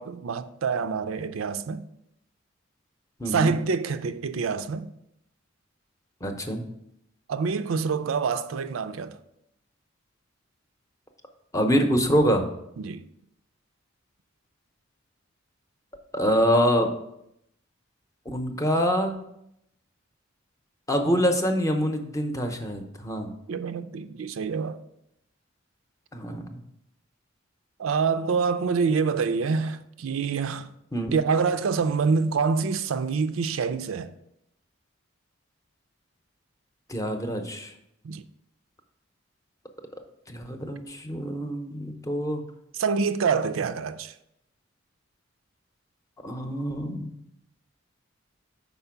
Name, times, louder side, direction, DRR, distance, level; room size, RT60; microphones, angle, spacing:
voice 1, 0.0-1.8 3.3-4.9 7.3-9.2 12.8-13.0 23.5-24.8 27.8-30.7 31.1-34.1 38.0-38.2 42.8-44.1, right 5 dB, 90° right, 0.4 m, -26 dB
voice 2, 3.2-3.5 6.2-6.6 11.5-12.5 16.1-16.9 18.3-19.2 20.9-23.3 26.1-26.6 30.9-31.1 36.9-37.7 40.3-42.4 46.2-47.2, equal, 15° left, 0.7 m, -25 dB
5.5 x 4.3 x 5.8 m
head